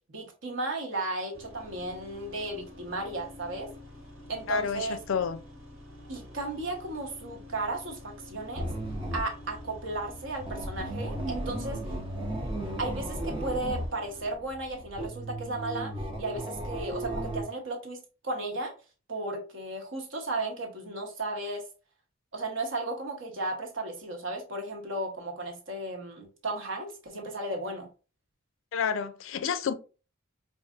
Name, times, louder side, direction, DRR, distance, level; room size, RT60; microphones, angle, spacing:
voice 1, 0.1-3.7 4.3-5.0 6.1-8.7 9.1-11.9 12.8-15.9 16.2-18.7 19.1-21.6 22.3-27.9, right 2 dB, 65° right, 1.0 m, -35 dB
sound 1, 1.3-14.3, left 2 dB, 80° right, 1.4 m, -48 dB
voice 2, 4.5-5.4 28.7-29.7, left 6 dB, 70° left, 0.4 m, -29 dB
sound 2, 8.6-13.9 14.2-17.4, right 1 dB, 25° right, 0.6 m, -35 dB
4.6 x 2.5 x 2.4 m
head